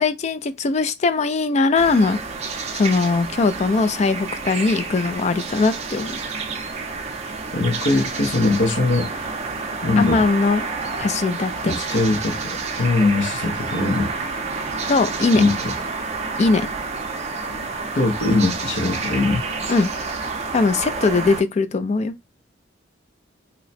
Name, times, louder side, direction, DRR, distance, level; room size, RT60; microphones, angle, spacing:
voice 1, 0.0-2.2 2.7-6.2 10.0-10.7 11.0-11.8 14.9-15.4 16.4-16.7 19.7-19.9 20.5-22.1, left 3 dB, 35° left, 0.3 m, -20 dB
sound 1, 1.8-21.4, right 4 dB, 35° right, 0.5 m, -29 dB
voice 2, 7.5-9.1 9.8-10.2 11.6-14.2 15.3-15.7 17.9-19.4, left 3 dB, 70° left, 0.8 m, -21 dB
2.8 x 2.1 x 4.0 m
head